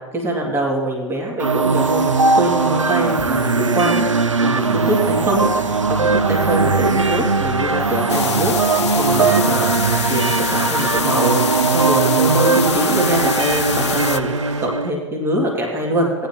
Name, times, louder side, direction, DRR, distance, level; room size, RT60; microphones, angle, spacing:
voice 1, 0.1-4.1 4.4-5.5 5.8-8.5 8.8-11.4 11.7-14.3 14.6-16.3, right 1 dB, 15° right, -2 dB, 2.1 m, -23 dB
sound 1, 1.4-14.9, right 4 dB, 85° right, 0.6 m, -19 dB
Stream, 1.7-14.7, right 2 dB, 65° right, 2.3 m, -37 dB
sound 2, 8.1-14.2, left 10 dB, 65° left, 0.4 m, -26 dB
17.5 x 10.0 x 2.8 m, 1.2 s
figure-of-eight pair, 100°, 16 cm